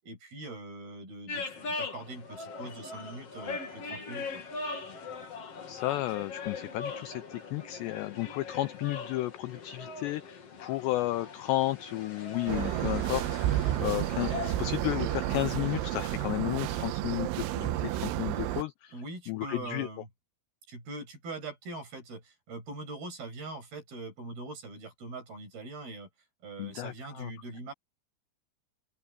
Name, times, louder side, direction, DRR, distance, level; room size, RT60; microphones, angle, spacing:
voice 1, 0.0-4.4 18.9-20.1 20.7-26.1 26.4-27.7, right 2 dB, 50° right, 8.9 m, -42 dB
sound 1, 1.3-16.2, left 4 dB, 40° left, 2.7 m, -41 dB
voice 2, 5.7-13.3 13.8-19.0 19.3-19.9 26.6-27.3, left 17 dB, 85° left, 2.4 m, -33 dB
sound 2, 12.5-18.6, right 14 dB, 80° right, 3.3 m, -31 dB
open air
omnidirectional pair, 5.8 m